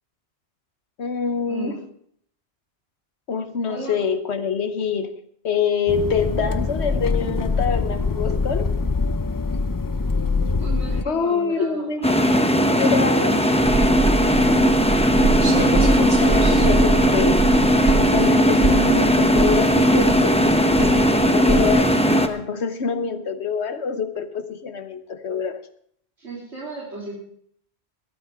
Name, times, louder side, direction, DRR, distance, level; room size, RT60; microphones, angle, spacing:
voice 1, 1.0-1.8 3.3-5.2 5.4-8.8 11.0-12.1 12.6-13.5 15.6-17.5 18.0-25.6, left 6 dB, 90° left, 9 dB, 1.4 m, -26 dB
voice 2, 3.6-4.0 10.6-12.3 26.2-27.1, right 3 dB, 85° right, -6 dB, 3.5 m, -34 dB
sound 1, 5.9-11.0, left 4 dB, 35° left, 0.3 m, -23 dB
sound 2, 12.0-22.3, equal, 5° left, 0.8 m, -18 dB
sound 3, 13.6-21.8, right 3 dB, 40° right, 1.2 m, -25 dB
17.5 x 13.5 x 3.5 m, 0.65 s
omnidirectional pair, 1.1 m